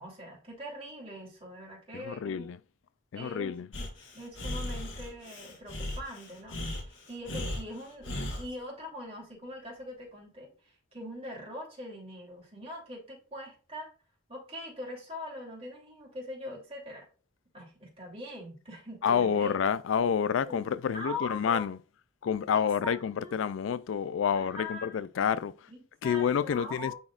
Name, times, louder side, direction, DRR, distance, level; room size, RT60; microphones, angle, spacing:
voice 1, 0.0-2.5 3.1-13.9 14.3-17.0 17.5-19.6 20.4-20.6 20.9-21.7 22.8-23.4 24.3-25.0 25.7-26.9, left 1 dB, 30° right, 3.0 m, -42 dB
voice 2, 1.9-2.6 3.1-3.7 19.0-21.8 22.2-25.5 26.0-26.9, left 7 dB, 85° left, 0.4 m, -28 dB
Breathing, 3.7-8.5, left 1 dB, 65° left, 1.5 m, -37 dB
9.6 x 4.2 x 2.4 m
head